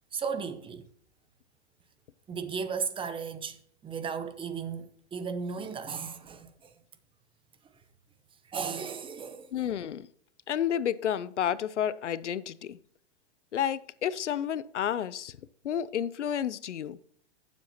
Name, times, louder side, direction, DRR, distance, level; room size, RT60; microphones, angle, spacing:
voice 1, 0.1-0.9 2.3-3.6 3.8-6.7 8.5-9.7, right 6 dB, 15° right, 0.9 m, -35 dB
voice 2, 9.5-10.1 10.5-12.8 13.5-15.4 15.6-17.0, left 9 dB, 85° left, 0.6 m, -31 dB
15.0 x 7.4 x 2.9 m
hypercardioid pair, 115°, 35 cm